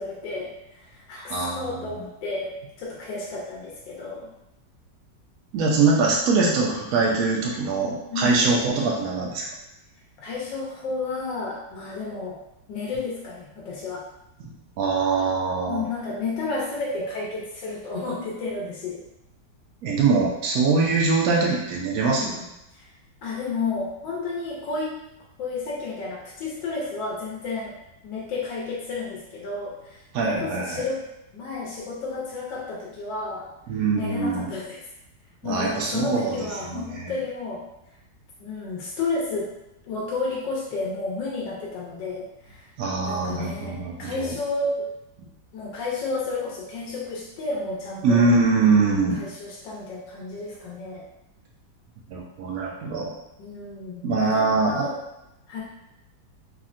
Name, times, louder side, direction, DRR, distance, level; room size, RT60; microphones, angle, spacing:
voice 1, 0.0-4.3 8.1-8.4 10.2-12.4 12.7-14.0 15.7-19.0 22.2-22.5 22.7-22.9 23.2-25.0 25.4-27.8 28.0-31.0 31.3-33.5 33.9-34.8 35.4-37.7 38.4-39.5 39.8-42.6 43.0-44.9 45.5-48.3 49.2-51.0 53.4-55.0 55.5-55.6, left 3 dB, 90° left, -4 dB, 1.3 m, -31 dB
voice 2, 1.2-2.1 5.5-9.5 14.4-14.5 14.8-15.8 19.8-22.3 30.1-30.8 33.7-34.5 35.4-36.3 36.6-37.1 42.8-44.3 48.0-49.2 52.1-53.1 54.0-54.9, right 4 dB, 70° right, -2 dB, 0.8 m, -23 dB
3.6 x 2.1 x 2.4 m, 0.88 s
omnidirectional pair, 1.9 m